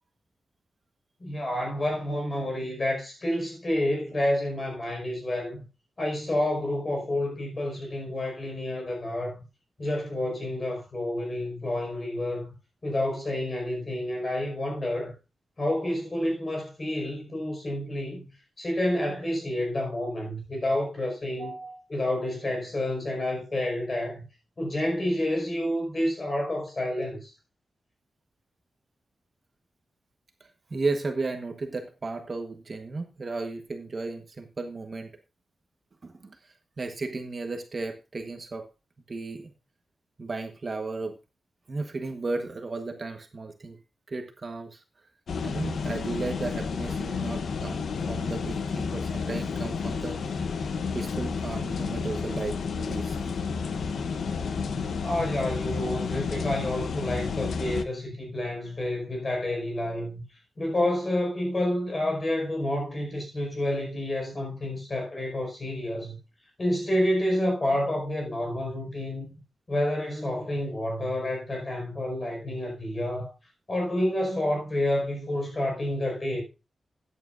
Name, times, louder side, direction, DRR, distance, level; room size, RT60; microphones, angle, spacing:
voice 1, 1.2-5.6 6.0-9.4 9.8-12.5 12.8-15.1 15.6-18.3 18.6-21.5 21.9-24.2 24.6-27.3 55.0-60.2 60.6-66.2 66.6-69.3 69.7-73.3 73.7-76.4, left 1 dB, 30° left, 5.1 m, -29 dB
voice 2, 21.4-21.8 30.4-35.1 36.0-38.6 39.1-39.5 40.2-41.1 41.7-43.8 44.1-44.8 45.4-50.2 50.9-53.2, right 3 dB, 35° right, 1.2 m, -34 dB
sound 1, 45.3-57.8, left 5 dB, 75° left, 0.9 m, -31 dB
14.0 x 9.6 x 2.5 m
wide cardioid pair, 155°, 0 cm